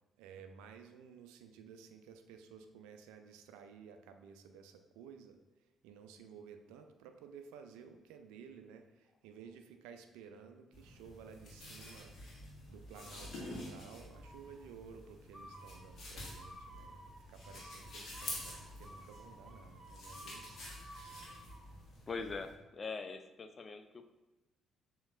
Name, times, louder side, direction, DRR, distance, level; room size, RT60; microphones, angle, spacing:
voice 1, 0.2-5.4 5.8-12.2 12.7-20.6, right 6 dB, 75° right, 7 dB, 0.3 m, -54 dB
sound 1, 10.7-22.5, left 1 dB, 55° left, 1.4 m, -49 dB
sound 2, 12.9-13.7 14.1-14.6 15.3-21.6, right 1 dB, 25° right, 0.9 m, -55 dB
voice 2, 22.1-24.1, left 4 dB, 40° left, 9 dB, 0.4 m, -42 dB
6.9 x 2.9 x 2.5 m, 1.1 s
hypercardioid pair, 45°, 0 cm